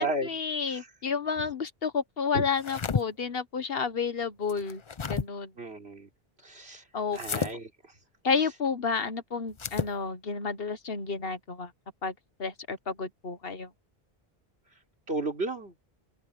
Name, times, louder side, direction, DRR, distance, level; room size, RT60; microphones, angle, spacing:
voice 1, 0.0-4.8 5.1-5.5 6.9-7.4 8.2-11.7 12.0-12.1 12.4-13.7, left 5 dB, 65° left, 1.5 m, -31 dB
sound 1, 2.5-3.0 4.5-5.3 7.1-7.5 9.5-9.9, left 5 dB, 35° left, 0.6 m, -31 dB
voice 2, 5.6-6.1 6.4-6.8 7.1-7.7 15.1-15.7, right 2 dB, 75° right, 4.0 m, -33 dB
open air
omnidirectional pair, 1.1 m